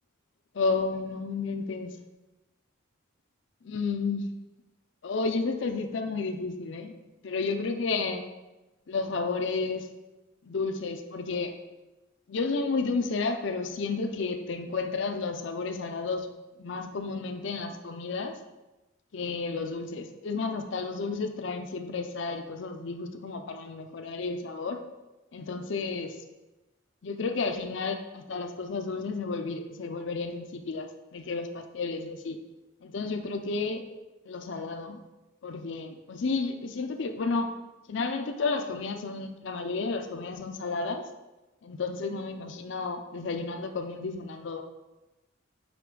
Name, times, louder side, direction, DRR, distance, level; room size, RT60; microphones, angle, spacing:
voice 1, 0.5-2.0 3.6-4.2 5.0-7.0 7.2-8.2 8.9-9.9 10.4-11.5 12.3-16.3 16.6-18.4 19.1-24.8 25.3-26.1 27.0-32.4 32.8-33.8 34.3-35.0 35.4-37.5 37.9-41.0 41.6-44.6, left 4 dB, 60° left, 6 dB, 0.5 m, -32 dB
5.8 x 5.1 x 3.8 m, 1.1 s
head